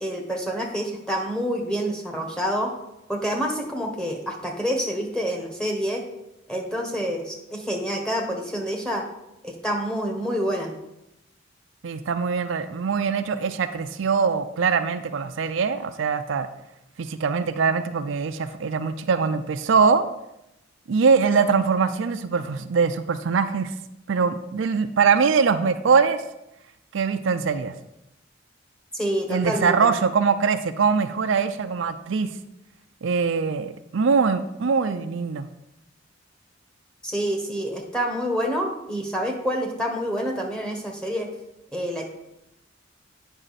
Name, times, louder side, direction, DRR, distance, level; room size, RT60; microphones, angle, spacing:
voice 1, 0.0-2.7 3.1-6.0 6.5-9.0 9.4-10.7 28.9-29.9 37.0-41.3 41.7-42.1, equal, 5° left, 0 dB, 1.1 m, -27 dB
voice 2, 11.8-16.5 17.0-20.0 20.9-23.7 24.1-26.2 26.9-27.7 29.3-32.3 33.0-35.5, right 5 dB, 70° right, 9 dB, 0.5 m, -22 dB
8.9 x 5.5 x 4.1 m, 0.86 s
head